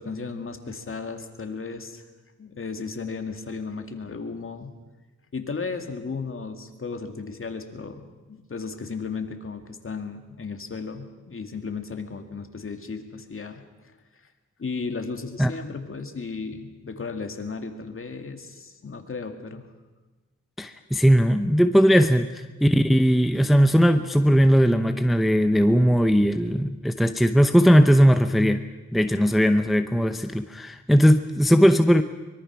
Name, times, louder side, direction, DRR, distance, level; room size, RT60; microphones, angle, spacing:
voice 1, 0.0-2.0 2.4-4.8 5.3-13.9 14.6-19.7, left 4 dB, 40° left, 5 dB, 2.2 m, -35 dB
voice 2, 20.6-28.6 28.9-32.0, equal, ahead, 8 dB, 0.7 m, -19 dB
24.0 x 22.5 x 6.0 m, 1.2 s
wide cardioid pair, 120°, 31 cm